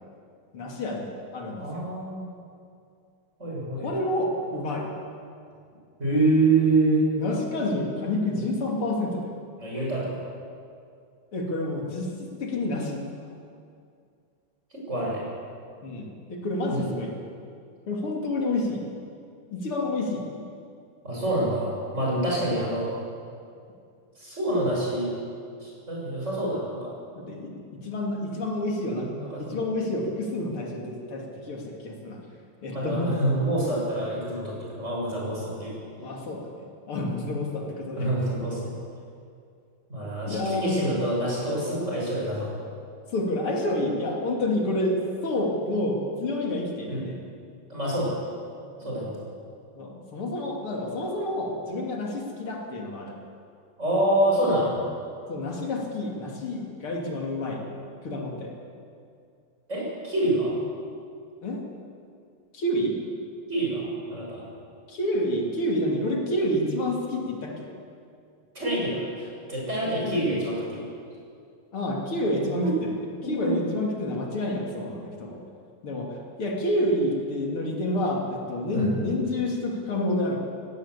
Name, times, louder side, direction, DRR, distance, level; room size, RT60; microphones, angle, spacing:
voice 1, 0.5-1.9 3.7-4.9 7.2-9.3 11.3-13.0 15.8-17.1 17.9-18.8 19.5-20.3 22.2-22.4 27.2-27.6 27.8-32.2 32.6-33.2 36.0-38.1 40.3-40.9 43.1-47.2 48.8-49.0 49.7-53.2 55.3-57.6 58.0-58.5 61.4-61.6 62.5-63.0 64.9-67.7 69.8-70.2 71.7-72.9 73.3-75.4 75.8-80.4, left 1 dB, 75° left, 0 dB, 3.5 m, -29 dB
voice 2, 1.5-2.3 3.4-3.9 6.0-7.1 9.6-10.2 14.7-15.2 16.7-16.9 21.0-22.9 24.2-25.1 25.6-26.9 29.2-29.6 32.7-35.8 38.0-38.7 39.9-42.6 46.9-47.0 47.7-48.2 48.8-49.1 53.8-54.8 59.7-60.6 63.5-64.4 68.6-70.8 72.6-72.7 73.2-73.5 78.7-78.9, right 2 dB, 30° right, -4 dB, 7.1 m, -26 dB
18.5 x 17.5 x 8.3 m, 2.4 s
omnidirectional pair, 2.4 m